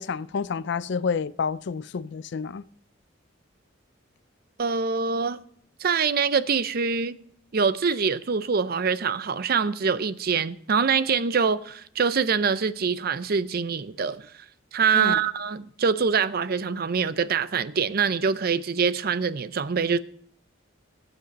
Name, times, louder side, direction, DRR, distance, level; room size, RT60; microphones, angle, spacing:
voice 1, 0.0-2.6 14.9-15.2, left 5 dB, 60° left, 0.4 m, -29 dB
voice 2, 4.6-5.4 5.8-7.1 7.5-14.3 14.7-20.0, right 5 dB, 50° right, 0.5 m, -24 dB
18.5 x 8.0 x 4.1 m
head